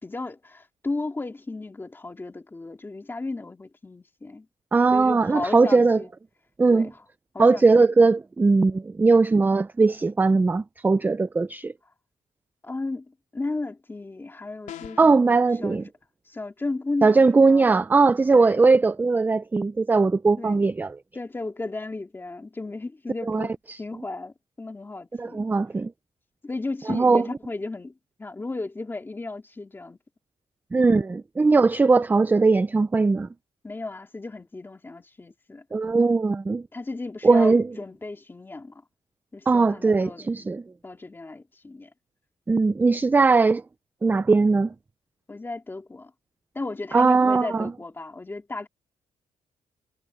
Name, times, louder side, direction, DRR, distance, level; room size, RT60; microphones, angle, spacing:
voice 1, 0.0-4.5 4.9-6.1 6.7-7.0 7.3-7.9 12.6-15.3 15.6-15.8 16.3-17.7 18.3-18.7 20.4-20.6 21.1-25.5 26.4-27.9 28.2-30.0 33.6-35.6 36.7-38.8 39.3-40.3 40.8-41.9 45.3-46.1 46.5-48.7, left 3 dB, 15° left, 2.5 m, -34 dB
voice 2, 4.7-6.0 6.6-6.9 7.4-11.7 15.0-15.8 17.0-21.0 23.3-23.5 25.2-25.9 26.9-27.3 30.7-33.3 35.7-36.6 37.2-37.6 39.5-40.6 42.5-43.6 44.0-44.7 46.9-47.7, right 3 dB, 15° right, 0.4 m, -19 dB
sound 1, 14.7-15.2, left 10 dB, 90° left, 3.6 m, -40 dB
wide cardioid pair, 155°, 13 cm